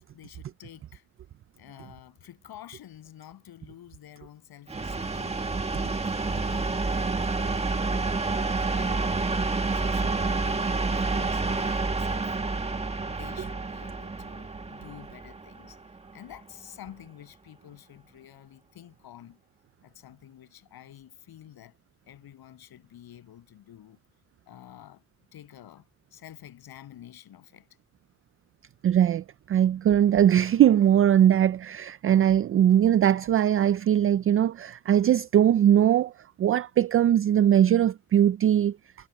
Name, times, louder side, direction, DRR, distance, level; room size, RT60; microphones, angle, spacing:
voice 1, 0.1-1.1 1.6-5.4 5.8-9.4 9.7-12.6 13.0-15.8 16.1-19.4 19.8-21.8 22.0-24.0 24.5-25.0 25.3-27.7, left 11 dB, 65° left, 7.8 m, -49 dB
sound 1, 4.7-16.3, right 3 dB, 15° right, 1.6 m, -29 dB
voice 2, 28.8-36.1 36.4-38.8, right 10 dB, 35° right, 0.4 m, -21 dB
cardioid pair, 125°, 39 cm